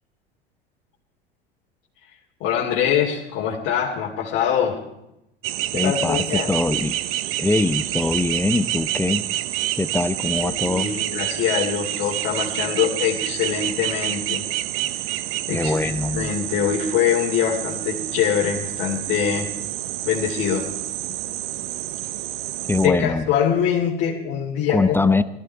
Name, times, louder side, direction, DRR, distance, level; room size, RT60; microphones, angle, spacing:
voice 1, 2.4-4.8 5.7-6.6 10.4-14.5 14.9-15.2 15.5-19.5 20.0-20.7 22.8-25.1, left 9 dB, 50° left, -3 dB, 2.9 m, -24 dB
sound 1, 5.4-22.9, right 14 dB, 45° right, 1.0 m, -28 dB
voice 2, 5.7-6.9 7.4-9.2 9.7-10.9 15.5-16.3 22.7-23.3 24.7-25.2, left 2 dB, 5° left, 14 dB, 0.7 m, -22 dB
20.0 x 14.5 x 4.7 m, 0.87 s
hypercardioid pair, 80°, 30 cm